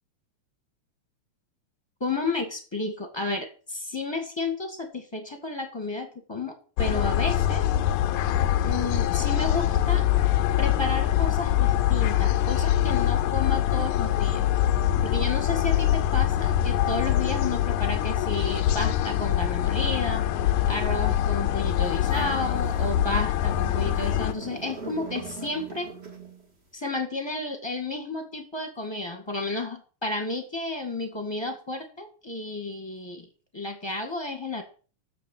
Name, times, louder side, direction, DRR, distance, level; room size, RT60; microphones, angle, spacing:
voice 1, 2.0-7.6 8.6-10.0 10.6-14.5 15.0-20.2 20.7-25.9 26.7-33.3 33.5-34.6, left 2 dB, 10° left, 5 dB, 1.6 m, -32 dB
sound 1, 6.8-24.3, left 12 dB, 80° left, 2.0 m, -24 dB
sound 2, 21.8-26.5, right 3 dB, 25° right, 1.8 m, -41 dB
7.4 x 7.3 x 8.4 m, 0.39 s
omnidirectional pair, 3.3 m